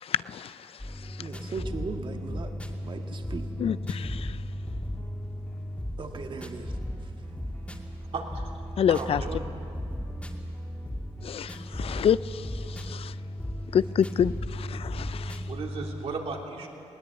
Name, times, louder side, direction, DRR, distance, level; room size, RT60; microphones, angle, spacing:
voice 1, 0.0-1.3 3.6-4.4 8.8-9.2 11.2-13.1 13.7-15.4, left 8 dB, 60° left, 17 dB, 0.5 m, -28 dB
sound 1, 0.8-16.0, equal, 10° left, 2.4 m, -36 dB
voice 2, 1.2-2.5 2.8-3.5 6.0-6.7, right 4 dB, 50° right, 5 dB, 1.7 m, -37 dB
voice 3, 8.1-8.5 8.9-9.5 15.5-16.7, right 4 dB, 65° right, 1 dB, 3.1 m, -35 dB
20.5 x 17.5 x 8.7 m, 2.7 s
cardioid pair, 95°, 11 cm